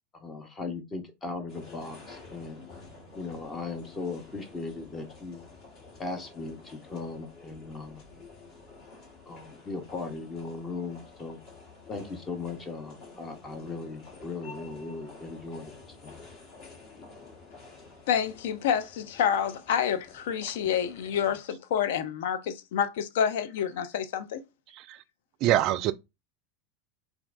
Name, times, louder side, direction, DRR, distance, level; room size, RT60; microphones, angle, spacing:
voice 1, 0.2-2.6 3.1-5.4 6.0-8.0 9.3-11.4 11.9-15.7 16.0-16.2, left 3 dB, 25° left, 0.8 m, -38 dB
sound 1, 1.5-21.4, left 3 dB, 45° left, 1.7 m, -50 dB
voice 2, 18.1-24.4, left 8 dB, 65° left, 0.4 m, -28 dB
voice 3, 24.7-25.0 25.4-25.9, right 13 dB, 50° right, 0.3 m, -25 dB
4.4 x 2.4 x 2.5 m
figure-of-eight pair, 85°, 0 cm